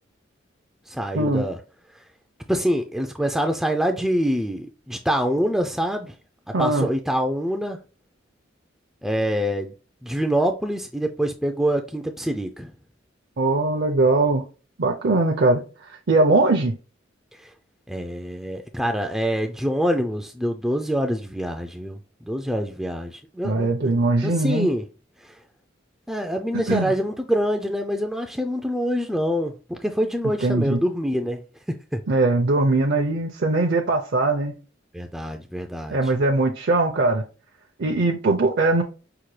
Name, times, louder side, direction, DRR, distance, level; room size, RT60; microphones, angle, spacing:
voice 1, 0.9-1.6 1.9-2.0 2.5-6.1 6.6-7.8 9.0-9.7 10.0-12.7 17.3-17.5 17.9-22.0 22.3-23.9 24.2-24.8 25.2-25.4 26.1-31.4 31.9-32.0 34.9-36.1, equal, ahead, 0.3 m, -25 dB
voice 2, 6.5-6.9 13.4-14.4 14.8-16.7 23.4-24.7 26.7-26.9 30.4-30.8 32.1-34.5 35.9-37.2 37.8-38.8, right 2 dB, 55° right, 0.6 m, -21 dB
5.7 x 2.2 x 3.1 m
head